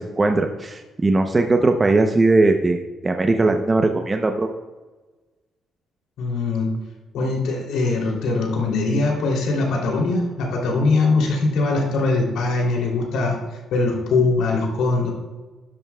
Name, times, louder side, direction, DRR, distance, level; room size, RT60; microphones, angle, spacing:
voice 1, 0.0-4.5, right 2 dB, 25° right, 4 dB, 0.7 m, -19 dB
voice 2, 6.2-6.7 7.1-13.4 13.7-15.1, left 3 dB, 85° left, -1 dB, 3.0 m, -21 dB
13.0 x 11.0 x 2.3 m, 1.3 s
cardioid pair, 90°, 0 cm